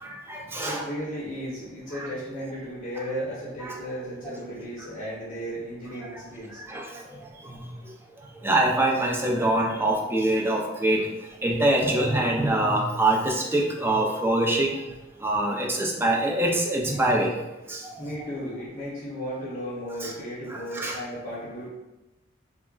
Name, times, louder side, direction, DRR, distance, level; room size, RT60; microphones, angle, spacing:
voice 1, 0.0-0.8 1.9-2.1 3.6-3.8 6.1-6.2 6.7-7.0 7.4-7.7 8.4-11.1 11.4-14.8 15.2-17.4 17.7-18.0 20.0-20.1 20.5-21.0, right 1 dB, 10° right, 0 dB, 0.3 m, -24 dB
voice 2, 0.6-6.6 18.0-21.7, equal, 35° left, -8 dB, 0.8 m, -35 dB
2.3 x 2.1 x 3.7 m, 1.0 s
head